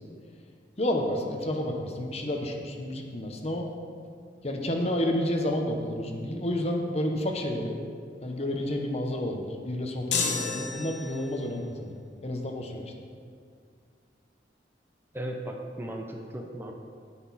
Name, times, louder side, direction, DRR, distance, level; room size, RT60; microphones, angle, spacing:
voice 1, 0.8-3.7 4.4-7.8 8.2-12.8, left 1 dB, 35° left, 2 dB, 1.0 m, -30 dB
sound 1, 10.1-11.4, left 4 dB, 75° left, 1.0 m, -30 dB
voice 2, 15.1-16.7, right 1 dB, 15° right, 2 dB, 0.7 m, -36 dB
9.9 x 9.3 x 4.2 m, 2.2 s
head